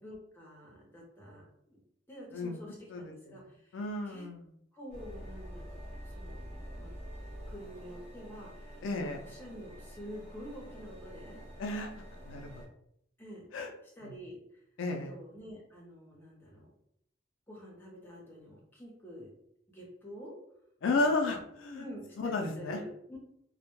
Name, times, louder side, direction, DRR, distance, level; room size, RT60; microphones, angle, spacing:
voice 1, 0.0-1.8 2.1-4.3 4.7-6.9 7.5-11.4 13.2-13.5 14.0-14.6 14.9-16.7 17.5-19.3 19.7-20.4 21.2-21.4 21.7-23.2, equal, 10° left, -3 dB, 0.6 m, -48 dB
voice 2, 3.7-4.4 8.8-9.2 11.6-11.9 12.2-12.6 13.5-13.7 14.0-14.1 14.8-15.1 20.8-21.8 22.2-22.8, left 2 dB, 75° left, 3 dB, 0.3 m, -32 dB
sound 1, 4.9-12.7, equal, 35° right, 0.7 m, -47 dB
2.1 x 2.0 x 2.9 m, 0.73 s
head